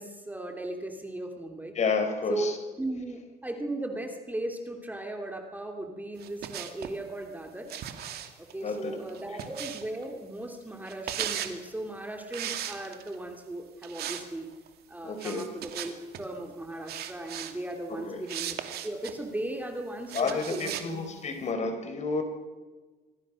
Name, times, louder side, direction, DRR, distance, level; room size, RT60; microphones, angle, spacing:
voice 1, 0.0-1.7 2.3-7.7 8.4-14.5 14.9-15.9 16.2-18.6 18.8-20.7, right 1 dB, 10° right, 3 dB, 2.8 m, -37 dB
voice 2, 1.7-2.5 8.6-9.0 15.0-15.5 17.9-18.2 20.1-22.2, left 4 dB, 45° left, 6 dB, 4.8 m, -30 dB
sound 1, 6.2-7.0 7.7-10.0 10.8-11.6 12.3-13.2 13.8-14.3 14.5-14.7 15.2-16.2 16.9-17.5 18.3-19.2 20.1-20.9, right 10 dB, 70° right, 2.4 m, -37 dB
26.0 x 24.5 x 6.4 m, 1.3 s
cardioid pair, 110°, 17 cm